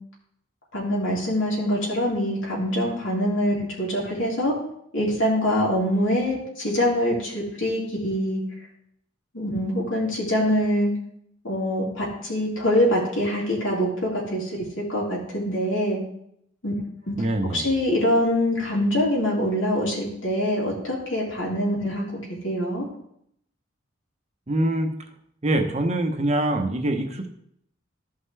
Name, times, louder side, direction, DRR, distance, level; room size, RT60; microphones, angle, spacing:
voice 1, 0.7-4.5 4.9-8.4 9.3-10.9 11.4-14.5 14.8-16.0 16.6-16.7 17.1-17.2 17.5-22.9, equal, 90° left, -4 dB, 3.2 m, -24 dB
voice 2, 17.2-17.7 24.5-24.9 25.4-27.3, right 1 dB, 35° right, 4 dB, 0.9 m, -24 dB
14.0 x 5.6 x 3.3 m, 0.72 s
head